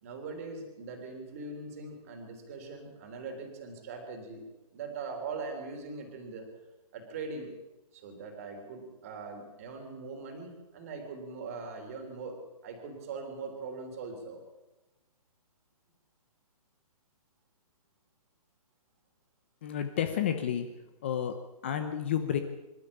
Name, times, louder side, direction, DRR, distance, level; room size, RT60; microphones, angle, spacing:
voice 1, 0.0-4.4 4.7-6.4 6.9-7.5 7.9-12.4 12.6-14.4, right 4 dB, 25° right, 4 dB, 3.4 m, -41 dB
voice 2, 19.6-20.7 21.0-21.3 21.6-22.4, left 9 dB, 20° left, 7 dB, 0.8 m, -30 dB
25.5 x 12.5 x 8.5 m, 1.1 s
hypercardioid pair, 180°, 19 cm